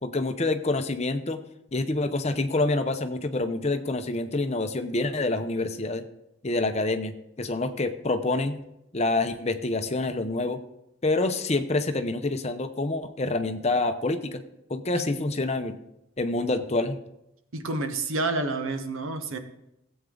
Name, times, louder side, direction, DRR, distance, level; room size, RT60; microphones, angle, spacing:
voice 1, 0.0-1.4 1.7-6.0 6.4-8.6 8.9-10.6 11.0-14.4 14.7-15.8 16.2-17.0, left 2 dB, 30° left, 8 dB, 0.7 m, -27 dB
voice 2, 17.5-19.4, right 3 dB, 80° right, 7 dB, 1.2 m, -29 dB
16.5 x 8.1 x 3.8 m, 0.85 s
head